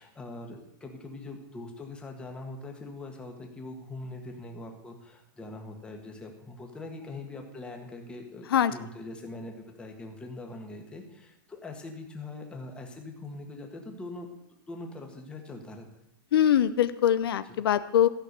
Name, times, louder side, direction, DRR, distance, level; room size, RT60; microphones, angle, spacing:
voice 1, 0.0-14.3 14.7-16.0 17.4-17.6, left 2 dB, 10° left, 2 dB, 1.6 m, -42 dB
voice 2, 16.3-18.1, left 10 dB, 80° left, 13 dB, 0.8 m, -23 dB
14.0 x 6.1 x 8.2 m, 0.87 s
supercardioid pair, 165°, 12 cm